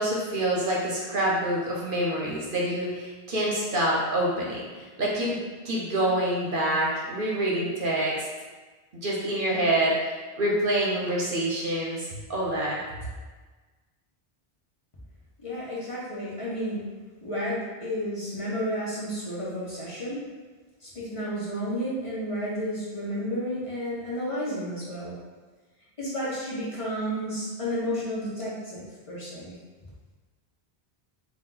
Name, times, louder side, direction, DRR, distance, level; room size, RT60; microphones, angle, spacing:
voice 1, 0.0-5.4 5.6-8.3 9.0-12.8, right 1 dB, 60° right, -4 dB, 0.9 m, -26 dB
voice 2, 15.4-16.8 17.2-20.2 20.8-25.1 26.0-29.6, equal, 35° left, -8 dB, 0.9 m, -31 dB
4.1 x 2.4 x 3.8 m, 1.3 s
omnidirectional pair, 1.1 m